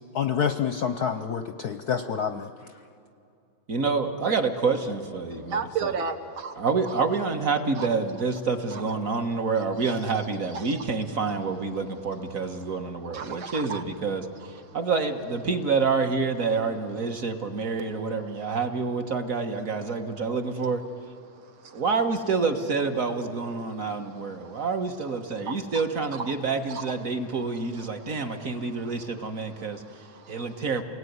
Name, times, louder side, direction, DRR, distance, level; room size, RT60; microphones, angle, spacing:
voice 1, 0.1-2.5, left 7 dB, 65° left, 9 dB, 1.0 m, -27 dB
voice 2, 3.7-5.9 6.6-20.8 21.7-29.8 30.3-30.8, right 4 dB, 45° right, 6 dB, 1.6 m, -28 dB
voice 3, 5.5-6.6 7.8-7.9 8.7-8.8 10.5-10.6 13.1-13.8 21.6-21.8 24.5-24.6 25.5-25.6 26.7-26.8 28.0-28.1 29.6-30.4, right 5 dB, 70° right, 5 dB, 2.2 m, -33 dB
29.0 x 19.0 x 9.5 m, 2.6 s
omnidirectional pair, 2.4 m